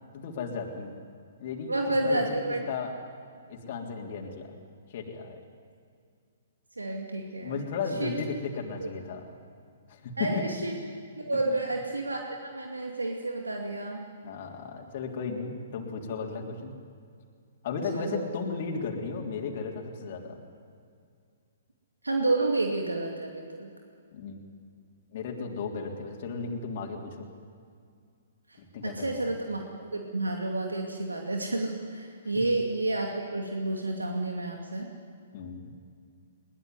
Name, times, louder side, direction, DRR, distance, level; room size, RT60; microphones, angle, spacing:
voice 1, 0.1-0.9 1.4-1.7 2.0-2.2 2.7-3.0 3.5-4.5 4.9-5.4 7.4-9.2 9.9-10.4 11.5-11.6 14.2-16.7 17.6-20.4 24.1-24.5 25.1-27.3 28.6-29.3 35.3-35.7, left 5 dB, 50° left, 1 dB, 3.5 m, -35 dB
voice 2, 1.7-2.6 6.8-7.6 8.0-8.1 8.8-8.9 10.2-10.7 11.2-14.1 17.9-18.2 22.0-23.7 28.8-34.9, right 2 dB, 90° right, 2 dB, 2.5 m, -30 dB
22.0 x 20.0 x 9.7 m, 2.2 s
figure-of-eight pair, 125°, 0 cm